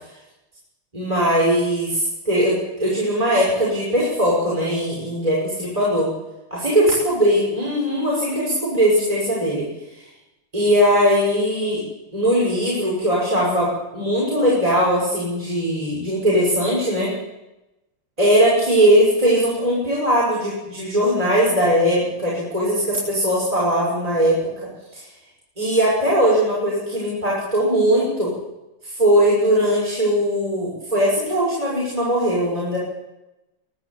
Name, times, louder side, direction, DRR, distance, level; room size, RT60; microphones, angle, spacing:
voice 1, 0.9-6.1 6.5-9.7 9.9-10.1 10.5-11.8 12.1-17.1 18.2-24.4 24.9-25.0 25.6-28.3 28.8-32.8, equal, 15° right, -5 dB, 6.0 m, -20 dB
23.5 x 12.5 x 8.8 m, 0.97 s
omnidirectional pair, 2.4 m